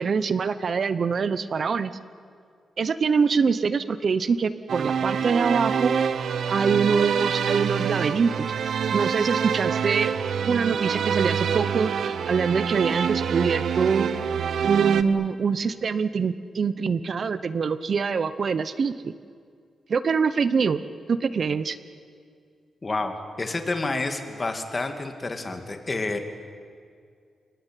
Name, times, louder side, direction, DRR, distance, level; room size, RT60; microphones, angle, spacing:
voice 1, 0.0-1.9 2.8-6.0 6.5-8.5 8.9-10.1 10.4-14.1 14.6-19.1 19.9-20.8 21.1-21.8, right 5 dB, 50° right, 13 dB, 0.9 m, -24 dB
sound 1, 4.7-15.0, right 7 dB, 70° right, 1.1 m, -26 dB
voice 2, 22.8-26.2, left 3 dB, 25° left, 6 dB, 2.5 m, -29 dB
30.0 x 19.0 x 9.2 m, 2.2 s
wide cardioid pair, 125°, 0 cm